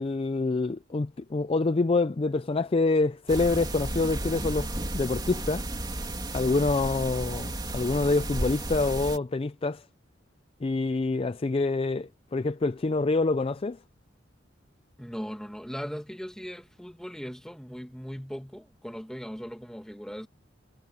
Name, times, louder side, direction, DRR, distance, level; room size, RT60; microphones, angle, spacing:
voice 1, 0.0-5.7 6.3-9.8 10.6-13.8, left 3 dB, 30° left, 0.4 m, -26 dB
sound 1, 3.3-9.2, right 1 dB, 20° right, 3.0 m, -33 dB
voice 2, 15.0-20.3, equal, 5° left, 2.0 m, -39 dB
head